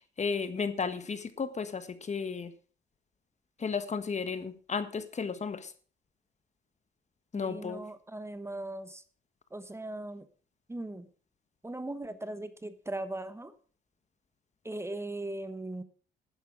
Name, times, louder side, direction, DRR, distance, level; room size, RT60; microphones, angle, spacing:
voice 1, 0.0-2.5 3.6-5.7 7.3-7.8, left 5 dB, 35° left, 12 dB, 1.4 m, -34 dB
voice 2, 7.3-9.0 9.5-10.3 10.7-11.1 11.6-13.5 14.6-15.8, right 1 dB, 15° right, 12 dB, 1.1 m, -39 dB
12.5 x 9.2 x 5.0 m, 0.41 s
cardioid pair, 90°, 20 cm